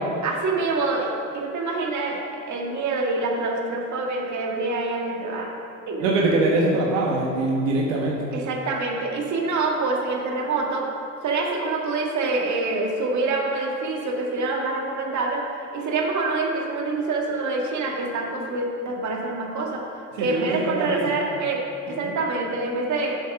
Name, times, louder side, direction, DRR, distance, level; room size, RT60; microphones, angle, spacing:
voice 1, 0.2-5.5 5.9-6.1 8.3-10.9 11.2-15.4 15.7-19.8 20.2-23.2, right 3 dB, 45° right, 1 dB, 1.7 m, -26 dB
voice 2, 6.0-8.3 20.1-21.1 21.9-22.1, right 2 dB, 75° right, -2 dB, 1.3 m, -23 dB
7.8 x 7.1 x 5.9 m, 2.6 s
hypercardioid pair, 70°, 39 cm